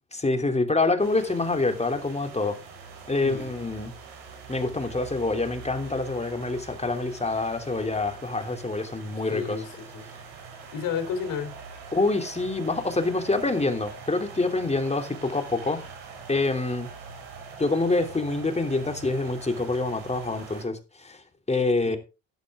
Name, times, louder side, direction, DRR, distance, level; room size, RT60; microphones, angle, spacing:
voice 1, 0.1-2.6 3.1-3.9 4.5-9.6 11.9-15.8 16.3-16.9 17.6-21.2 21.5-22.0, left 3 dB, 20° left, 3.0 m, -26 dB
sound 1, 1.0-20.6, right 5 dB, 90° right, 4.3 m, -44 dB
voice 2, 9.2-10.1 10.7-11.5 21.8-22.0, left 7 dB, 70° left, 3.7 m, -32 dB
11.5 x 11.5 x 3.6 m
supercardioid pair, 70°, 34 cm